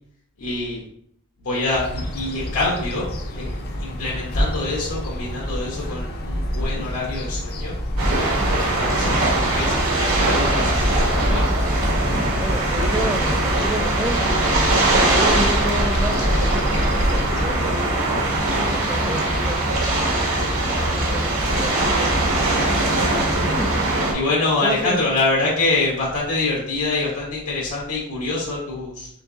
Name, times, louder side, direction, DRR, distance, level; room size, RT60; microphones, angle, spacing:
voice 1, 0.4-0.8 1.4-3.1 3.3-3.5 3.8-7.7 8.5-11.4 20.6-21.1 22.4-23.4 24.1-29.1, left 2 dB, 80° left, -5 dB, 1.2 m, -25 dB
sound 1, 1.7-17.7, equal, 50° left, 0.7 m, -27 dB
sound 2, 8.0-24.1, right 2 dB, 75° right, 1.4 m, -21 dB
voice 2, 12.4-19.6 20.4-21.8 23.4-23.8 24.6-25.0, equal, 5° right, 6 dB, 0.3 m, -31 dB
4.5 x 3.8 x 2.7 m, 0.69 s
head